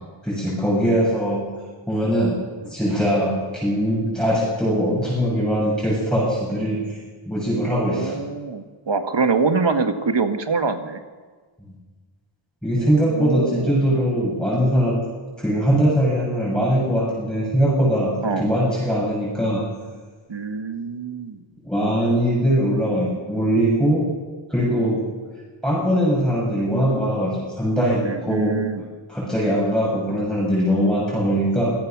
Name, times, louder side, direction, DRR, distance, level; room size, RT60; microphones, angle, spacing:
voice 1, 0.2-1.4 1.9-2.4 2.6-7.0 7.3-8.2 12.6-15.0 15.4-19.6 21.6-24.0 24.5-25.0 25.6-28.6 29.1-31.7, equal, ahead, -6 dB, 7.7 m, -21 dB
voice 2, 7.7-11.0 12.9-13.8 18.2-18.5 20.3-21.4 28.1-28.8, right 4 dB, 60° right, 7 dB, 1.8 m, -25 dB
27.0 x 17.0 x 6.2 m, 1.4 s
wide cardioid pair, 105°, 49 cm